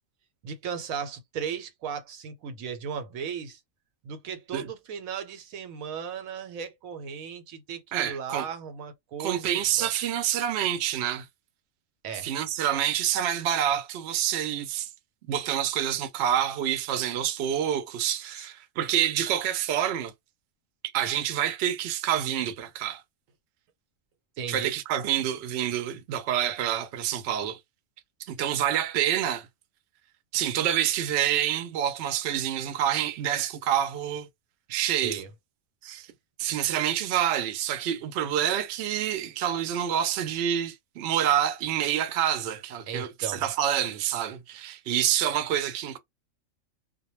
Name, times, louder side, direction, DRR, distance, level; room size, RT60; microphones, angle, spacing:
voice 1, 0.4-3.6 4.0-9.9 12.0-12.3 18.2-18.5 24.4-24.7 34.8-35.3 42.9-43.5, right 7 dB, 90° right, 1.1 m, -36 dB
voice 2, 7.9-8.5 9.2-11.3 12.2-14.9 15.3-20.1 20.9-23.0 24.5-27.6 28.2-29.5 30.3-34.3 34.7-35.2 35.8-36.1 36.4-46.0, right 10 dB, 65° right, 0.7 m, -27 dB
2.2 x 2.1 x 3.0 m
omnidirectional pair, 1.4 m